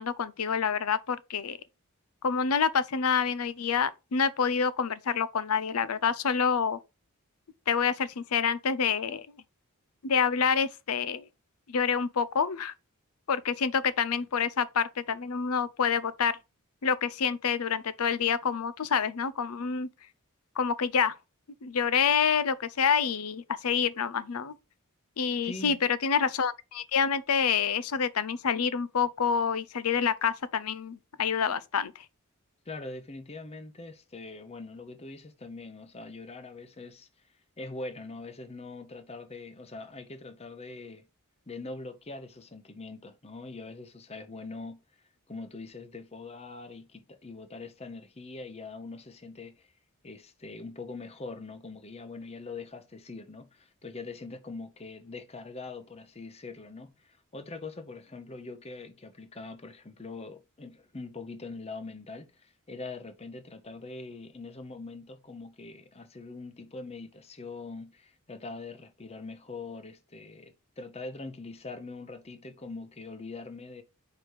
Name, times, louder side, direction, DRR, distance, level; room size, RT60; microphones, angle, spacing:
voice 1, 0.0-1.6 2.2-6.8 7.7-9.3 10.0-11.3 11.7-12.7 13.3-16.3 16.8-19.9 20.6-21.2 21.6-24.5 25.2-31.9, left 6 dB, 85° left, 0.6 m, -27 dB
voice 2, 25.4-25.8 32.7-37.1 37.6-41.1 41.5-44.8 45.3-49.7 50.0-73.8, left 3 dB, 30° left, 0.8 m, -43 dB
5.0 x 4.8 x 4.7 m
head